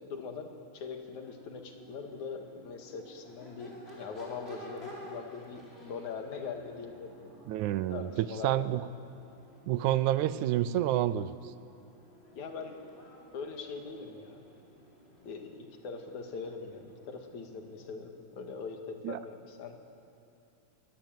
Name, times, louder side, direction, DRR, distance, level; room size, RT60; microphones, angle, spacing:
voice 1, 0.0-7.1 7.9-8.7 12.4-12.8 13.3-14.4 15.2-19.8, left 5 dB, 80° left, 4 dB, 3.4 m, -42 dB
Crowd / Race car auto racing / Accelerating revving vroom, 1.0-18.1, equal, 20° left, 5.4 m, -53 dB
voice 2, 7.5-8.9 9.7-11.3 19.0-19.2, right 13 dB, 85° right, 15 dB, 2.2 m, -29 dB
23.0 x 20.0 x 9.2 m, 2.7 s
omnidirectional pair, 3.3 m